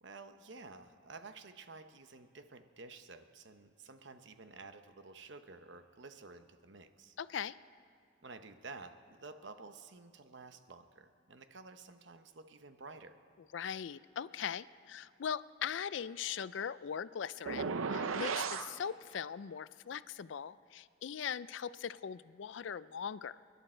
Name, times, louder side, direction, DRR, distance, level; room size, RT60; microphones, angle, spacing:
voice 1, 0.0-7.2 8.2-13.2, right 3 dB, 65° right, 9 dB, 0.9 m, -52 dB
voice 2, 7.2-7.6 13.5-23.4, left 7 dB, 65° left, 17 dB, 0.4 m, -40 dB
sound 1, 17.5-18.7, right 5 dB, 90° right, 0.6 m, -35 dB
29.0 x 11.0 x 4.4 m, 2.4 s
head